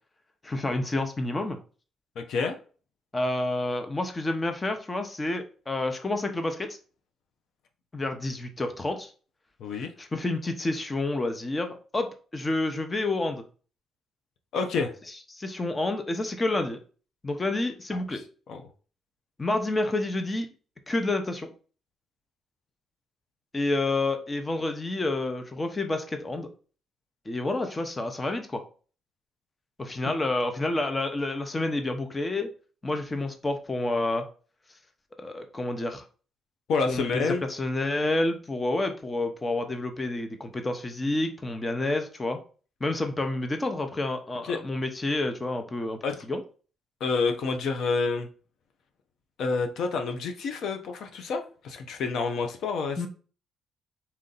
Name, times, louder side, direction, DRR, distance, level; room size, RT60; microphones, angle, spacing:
voice 1, 0.4-1.6 3.1-6.8 7.9-9.1 10.0-13.4 15.3-16.8 17.2-18.2 19.4-20.5 20.9-21.5 23.5-26.5 27.3-28.6 29.8-32.5 32.8-34.3 35.2-36.0 36.9-37.2 37.5-42.4 42.8-46.0 46.3-46.4 53.0-53.1, left 2 dB, 25° left, 7 dB, 0.7 m, -29 dB
voice 2, 2.2-2.6 9.6-9.9 14.5-14.9 17.9-18.2 18.5-18.6 30.0-30.1 36.7-37.4 44.4-44.6 46.0-46.2 47.0-48.3 49.4-53.1, left 4 dB, 75° left, 6 dB, 0.6 m, -28 dB
4.3 x 2.7 x 3.8 m, 0.38 s
cardioid pair, 90°, 0 cm